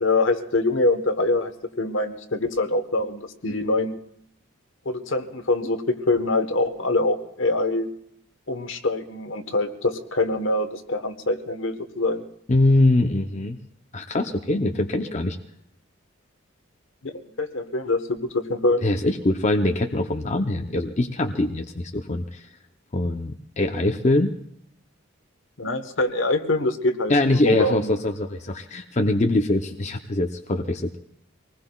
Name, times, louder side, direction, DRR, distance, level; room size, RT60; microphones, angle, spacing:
voice 1, 0.0-1.5 1.8-4.0 4.8-7.9 8.5-12.2 17.0-18.8 25.6-27.9, left 2 dB, 65° left, 8 dB, 1.1 m, -24 dB
voice 2, 12.5-13.6 13.9-15.4 18.8-22.5 22.9-24.3 27.1-31.0, left 2 dB, 35° left, 4 dB, 0.6 m, -23 dB
25.0 x 19.5 x 2.3 m, 0.70 s
head